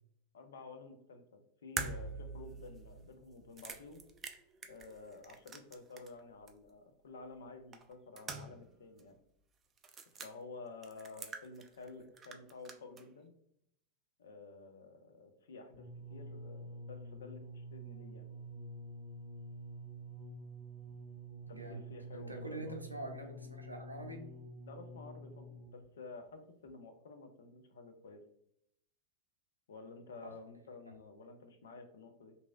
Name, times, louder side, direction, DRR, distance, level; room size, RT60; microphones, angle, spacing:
voice 1, 0.3-4.0 4.7-9.2 10.2-13.3 14.2-18.3 21.5-22.7 24.6-28.2 29.7-32.4, left 3 dB, 65° left, 6 dB, 0.4 m, -51 dB
sound 1, 1.8-6.2 6.5-6.6 7.7-8.7 9.0-9.1 9.8-10.3 10.8-11.9 12.2-13.1, right 4 dB, 25° right, 0.3 m, -45 dB
sound 2, 15.7-25.9 26.7-26.8, right 1 dB, 5° left, 1.5 m, -48 dB
voice 2, 21.5-24.3 30.2-30.3, right 1 dB, 85° right, 3 dB, 0.5 m, -45 dB
2.9 x 2.6 x 2.2 m, 0.74 s
figure-of-eight pair, 90°, 0 cm